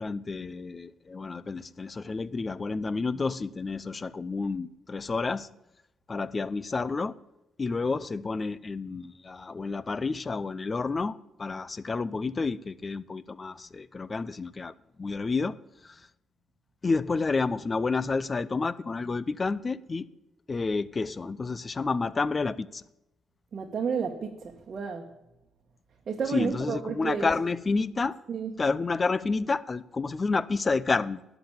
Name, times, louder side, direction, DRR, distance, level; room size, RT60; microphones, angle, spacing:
voice 1, 0.0-5.5 6.1-7.2 7.6-14.7 15.0-15.6 15.8-16.1 16.8-20.1 20.5-22.8 26.3-28.2 28.6-31.2, left 4 dB, 30° left, 0.5 m, -30 dB
voice 2, 23.5-25.0 26.1-27.3 28.3-28.5, right 6 dB, 45° right, 1.2 m, -31 dB
11.5 x 6.0 x 8.7 m
cardioid pair, 90°, 0 cm